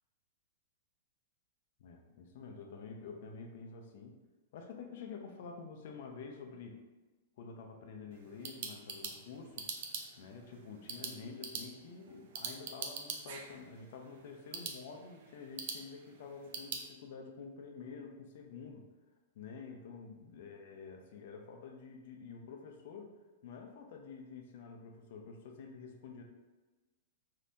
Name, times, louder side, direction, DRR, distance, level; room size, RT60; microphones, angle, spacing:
voice 1, 1.8-4.2 4.5-6.8 7.4-18.9 19.4-23.1 23.4-26.2, left 5 dB, 60° left, 3 dB, 0.5 m, -49 dB
sound 1, 8.1-16.9, right 5 dB, 55° right, 0.4 m, -45 dB
3.4 x 2.7 x 2.6 m, 1.2 s
supercardioid pair, 160°, 0 cm